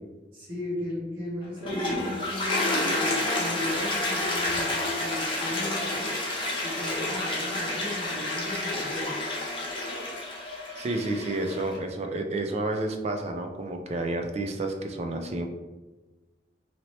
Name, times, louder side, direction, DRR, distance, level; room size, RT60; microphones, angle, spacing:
voice 1, 0.3-4.7 5.0-6.2 6.6-9.1, left 1 dB, 55° right, -10 dB, 1.1 m, -36 dB
Toilet flush, 1.4-11.8, left 2 dB, 30° left, 0.7 m, -29 dB
voice 2, 10.8-15.5, right 2 dB, 35° right, 5 dB, 0.3 m, -30 dB
2.8 x 2.8 x 3.0 m, 1.2 s
head